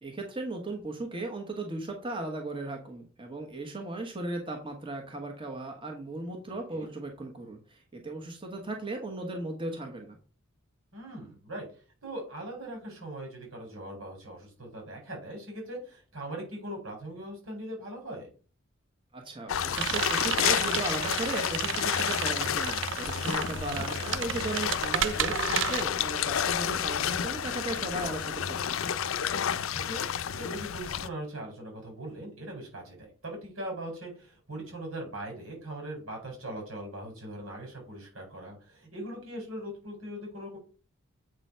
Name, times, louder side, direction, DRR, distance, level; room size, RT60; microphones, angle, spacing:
voice 1, 0.0-10.2 19.1-28.9, right 2 dB, 25° right, 3 dB, 1.2 m, -37 dB
voice 2, 10.9-11.6 12.0-18.3 23.6-23.9 29.8-30.0 30.4-40.6, right 1 dB, 90° right, 1 dB, 4.5 m, -40 dB
sound 1, 19.5-31.1, left 8 dB, 85° left, 0.5 m, -30 dB
sound 2, 19.7-25.8, right 9 dB, 65° right, 0.5 m, -32 dB
7.7 x 4.0 x 5.6 m, 0.38 s
head